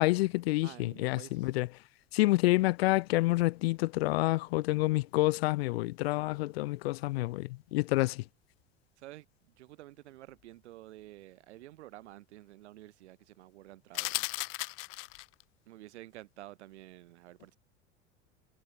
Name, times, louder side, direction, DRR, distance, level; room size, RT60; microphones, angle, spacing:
voice 1, 0.0-1.7 2.1-8.2, left 20 dB, 50° left, 1.0 m, -28 dB
voice 2, 0.6-1.6 9.0-14.3 15.7-17.6, right 15 dB, 60° right, 7.2 m, -51 dB
sound 1, 13.9-15.4, left 25 dB, 35° left, 0.6 m, -35 dB
figure-of-eight pair, 80°, 39 cm